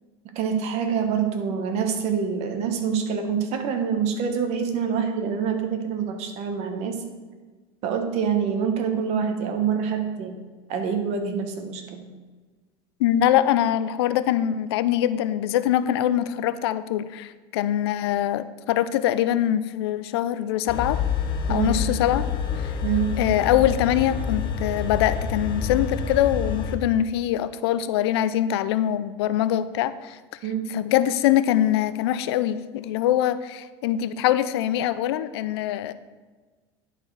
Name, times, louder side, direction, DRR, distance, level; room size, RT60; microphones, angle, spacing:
voice 1, 0.3-7.0 7.8-10.3 10.7-12.1 21.5-21.7 22.8-23.2 30.4-30.7, right 7 dB, 55° right, 5 dB, 1.3 m, -26 dB
voice 2, 13.0-21.0 21.5-22.3 22.6-22.7 23.2-30.2 30.7-35.9, left 11 dB, 85° left, 14 dB, 0.5 m, -23 dB
sound 1, 20.7-26.7, left 6 dB, 40° left, 1.0 m, -28 dB
10.5 x 4.5 x 4.8 m, 1.3 s
supercardioid pair, 120°, 13 cm